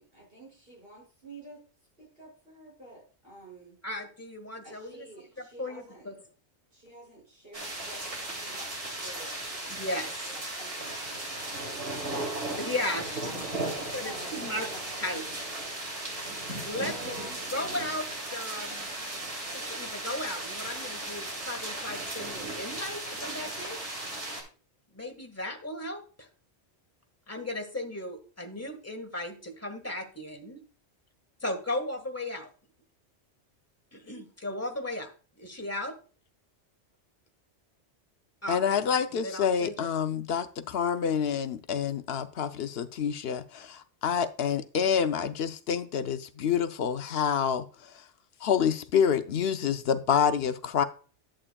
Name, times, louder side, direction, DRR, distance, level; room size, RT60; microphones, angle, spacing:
voice 1, 0.0-1.6 2.0-3.8 4.6-6.1 6.7-12.1 12.5-15.5 16.8-17.5, right 1 dB, 55° right, -3 dB, 5.9 m, -50 dB
voice 2, 3.8-5.0 5.6-6.1 9.7-10.1 12.6-13.2 13.7-14.7 15.0-15.2 16.6-17.2 17.5-18.9 19.5-23.8 24.9-26.3 27.3-30.6 31.4-32.5 33.9-35.1 35.4-36.0 38.4-39.9, left 1 dB, 15° left, 4 dB, 1.4 m, -36 dB
sound 1, 7.5-24.4, right 2 dB, 80° right, 2.9 m, -36 dB
voice 3, 38.5-47.7 48.4-50.8, left 7 dB, 65° left, 10 dB, 0.8 m, -27 dB
11.0 x 8.6 x 2.3 m, 0.37 s
omnidirectional pair, 1.2 m